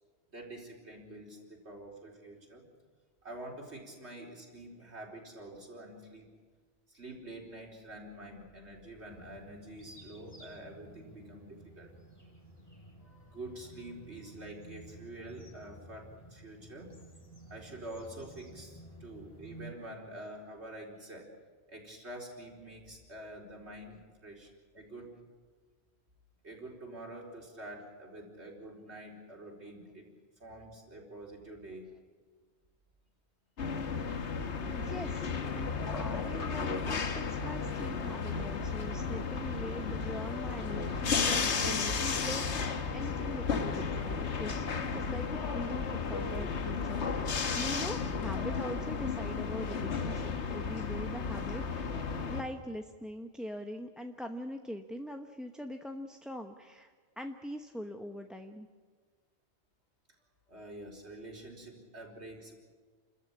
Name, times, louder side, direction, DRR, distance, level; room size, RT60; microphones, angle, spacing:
voice 1, 0.3-2.7 3.2-6.3 6.9-11.9 13.0-16.9 17.5-21.3 21.7-25.2 26.4-30.1 30.4-31.9 60.5-62.5, right 1 dB, 85° right, -1 dB, 4.7 m, -47 dB
sound 1, 8.9-19.7, right 1 dB, 20° left, 6.7 m, -53 dB
sound 2, 33.6-52.4, left 5 dB, 90° left, 1.6 m, -33 dB
voice 2, 34.7-51.9 52.3-58.7, equal, ahead, 5 dB, 0.9 m, -42 dB
29.0 x 14.0 x 8.7 m, 1.5 s
omnidirectional pair, 1.1 m